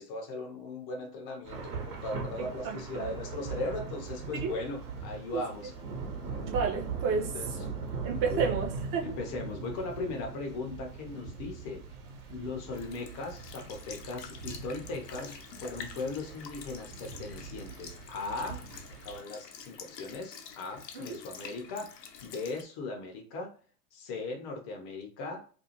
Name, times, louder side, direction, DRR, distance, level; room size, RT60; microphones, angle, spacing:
voice 1, 0.0-5.7 7.3-7.5 8.3-8.5 9.0-11.8 12.3-18.6 19.0-23.5 23.9-25.6, left 3 dB, 30° left, 0.5 m, -38 dB
Thunder / Rain, 1.4-19.2, right 5 dB, 65° right, 1.0 m, -40 dB
voice 2, 2.4-3.1 4.4-4.5 6.5-7.3 8.0-9.1 20.9-21.2, right 5 dB, 30° right, 0.6 m, -31 dB
Sink (filling or washing) / Liquid, 12.7-22.6, left 7 dB, 75° left, 0.7 m, -48 dB
2.5 x 2.3 x 2.8 m
figure-of-eight pair, 100°, 50 cm